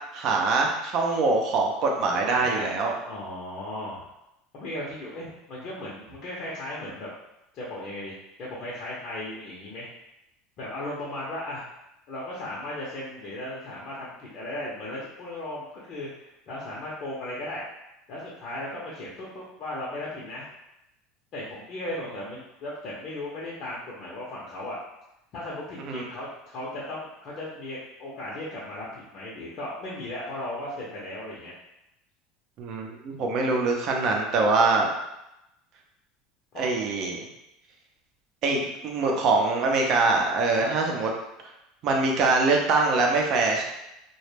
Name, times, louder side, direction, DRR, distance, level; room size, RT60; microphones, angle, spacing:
voice 1, 0.1-2.9 25.8-26.0 32.6-34.9 36.6-37.2 38.4-41.1 41.8-43.6, right 3 dB, 55° right, 1 dB, 0.5 m, -23 dB
voice 2, 2.1-4.1 4.5-7.1 7.5-9.9 10.6-11.7 12.1-17.6 18.1-20.5 21.3-24.8 25.3-31.5 36.5-36.6 40.5-40.7, left 1 dB, 50° left, -7 dB, 0.7 m, -36 dB
2.2 x 2.0 x 3.2 m, 0.87 s
hypercardioid pair, 90°, 0 cm